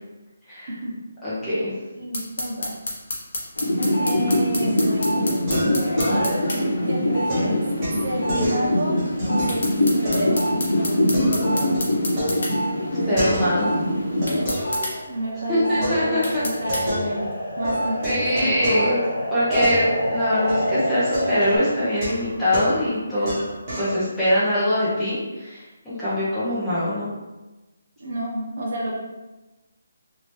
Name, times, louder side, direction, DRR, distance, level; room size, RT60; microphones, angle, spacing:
voice 1, 1.2-1.7 13.1-13.7 15.5-16.4 18.0-19.0 19.3-23.4 23.8-27.1, equal, 5° left, -12 dB, 0.8 m, -23 dB
voice 2, 1.9-2.7 4.0-5.2 6.8-7.7 8.0-9.0 9.2-10.5 15.1-17.3 17.6-18.5 23.2-23.3 28.0-29.0, equal, 55° right, -4 dB, 0.9 m, -29 dB
sound 1, 2.1-6.6 9.5-12.5 14.3-14.9 16.2-16.8, left 2 dB, 50° left, 0.9 m, -29 dB
sound 2, 3.6-14.8 15.2-21.6, equal, 85° left, 1.0 m, -24 dB
sound 3, 4.5-4.9 5.5-6.7 7.3-9.5 10.1-10.5 10.9-13.8 14.2-15.3 15.8-17.4 17.6-24.0, equal, 20° right, 1.1 m, -29 dB
2.9 x 2.8 x 3.1 m, 1.1 s
hypercardioid pair, 175°, 0 cm